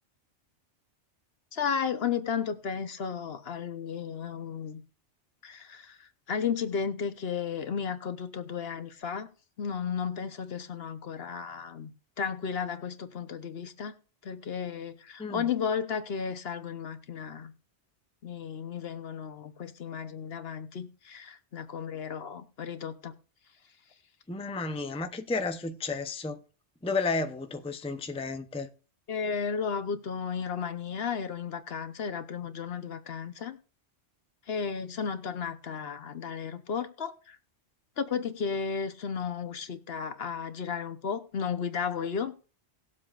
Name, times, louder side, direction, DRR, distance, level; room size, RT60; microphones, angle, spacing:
voice 1, 1.5-4.8 5.4-9.3 9.6-11.9 12.2-13.9 14.2-17.5 18.2-23.1 29.1-33.6 34.5-37.4 38.0-42.3, left 6 dB, 60° left, 1.1 m, -34 dB
voice 2, 24.3-26.4 26.8-28.7, left 3 dB, 5° left, 0.6 m, -32 dB
19.0 x 7.6 x 2.5 m
omnidirectional pair, 1.2 m